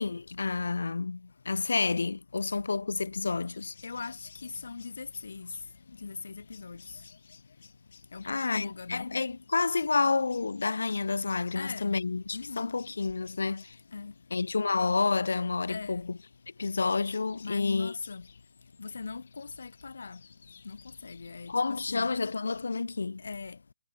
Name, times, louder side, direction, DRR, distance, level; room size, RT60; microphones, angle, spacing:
voice 1, 0.0-3.7 8.2-13.8 14.3-16.2 16.6-17.9 21.5-23.2, left 4 dB, 85° left, 1.1 m, -29 dB
sound 1, 3.5-22.9, left 6 dB, 45° left, 4.2 m, -59 dB
voice 2, 3.8-5.5 6.0-6.8 8.1-9.1 11.5-12.0 12.3-12.7 13.9-14.1 15.7-16.0 17.4-18.2 18.8-20.2 20.6-20.8 21.0-21.5 21.9-22.1 23.2-23.6, left 4 dB, 65° left, 3.1 m, -40 dB
hypercardioid pair, 175°, 0 cm